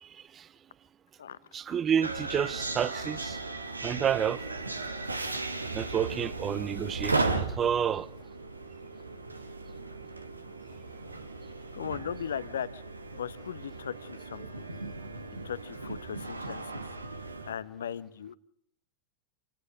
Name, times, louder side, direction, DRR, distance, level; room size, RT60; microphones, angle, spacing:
voice 1, 0.0-0.5 1.5-3.4 3.8-4.4 5.7-8.1, right 8 dB, 25° right, 0.8 m, -30 dB
sound 1, 2.0-17.5, right 3 dB, 80° right, 1.8 m, -36 dB
voice 2, 11.7-12.8 13.1-14.4 15.4-16.8 17.5-18.4, left 8 dB, 65° left, 0.9 m, -37 dB
28.0 x 18.0 x 5.3 m
figure-of-eight pair, 90°, 0 cm